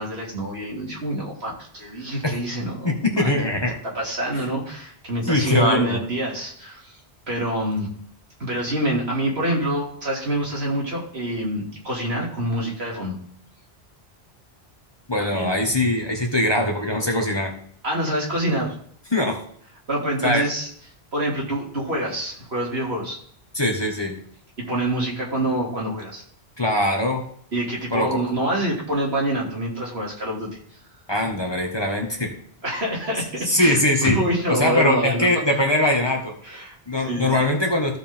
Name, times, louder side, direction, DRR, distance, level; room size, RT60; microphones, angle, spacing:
voice 1, 0.0-2.9 3.8-7.0 7.3-7.9 8.4-13.2 15.2-15.5 17.8-18.7 19.9-20.7 21.1-23.2 24.6-26.2 27.5-30.5 32.6-35.3 36.4-36.8 37.0-37.3, right 1 dB, 75° right, -3 dB, 3.0 m, -26 dB
voice 2, 2.8-3.8 5.2-6.0 15.1-17.5 19.1-19.4 20.2-20.4 23.5-24.2 26.6-27.2 27.9-28.2 31.1-32.3 33.5-34.2 34.5-36.3 36.9-38.0, left 1 dB, 25° left, 1 dB, 1.5 m, -21 dB
15.0 x 5.1 x 3.6 m, 0.62 s
omnidirectional pair, 1.1 m